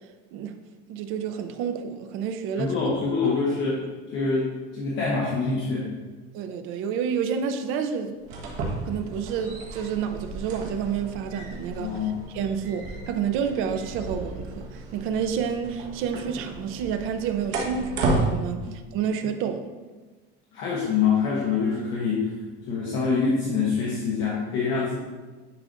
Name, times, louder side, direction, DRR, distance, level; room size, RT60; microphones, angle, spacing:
voice 1, 0.9-2.8 6.3-8.2 8.8-19.7, right 7 dB, 45° right, 7 dB, 0.5 m, -29 dB
voice 2, 2.6-5.9 11.8-12.2 18.6-18.8 20.5-22.3 22.7-24.9, left 5 dB, 40° left, -5 dB, 1.0 m, -25 dB
sound 1, 8.2-18.3, right 3 dB, 65° right, 1.4 m, -33 dB
9.9 x 4.8 x 2.6 m, 1.3 s
cardioid pair, 175°, 29 cm